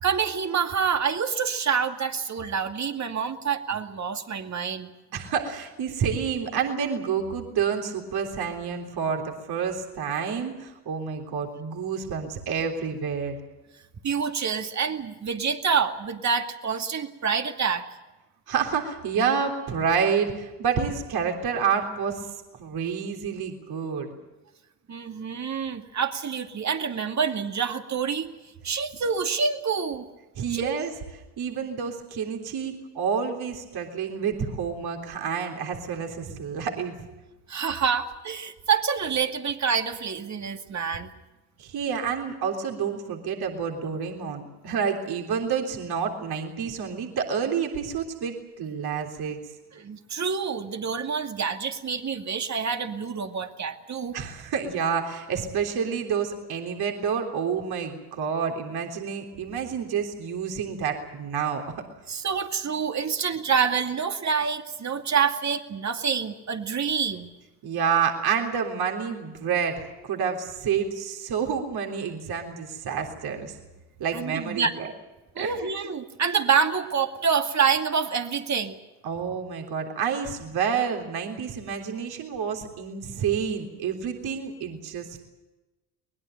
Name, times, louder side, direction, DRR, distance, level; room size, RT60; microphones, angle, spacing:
voice 1, 0.0-4.9 14.0-17.9 24.9-28.3 28.6-30.1 30.5-30.8 37.5-41.1 49.7-54.2 62.1-67.3 74.1-74.7 75.4-78.8, right 6 dB, 35° right, 5 dB, 2.4 m, -27 dB
voice 2, 5.1-13.4 18.5-24.1 30.4-37.1 41.6-49.4 54.1-61.6 67.6-73.5 74.0-74.9 75.4-75.7 79.0-85.2, right 6 dB, 55° right, 2 dB, 3.6 m, -29 dB
23.0 x 21.0 x 7.9 m, 1.1 s
hypercardioid pair, 55°, 46 cm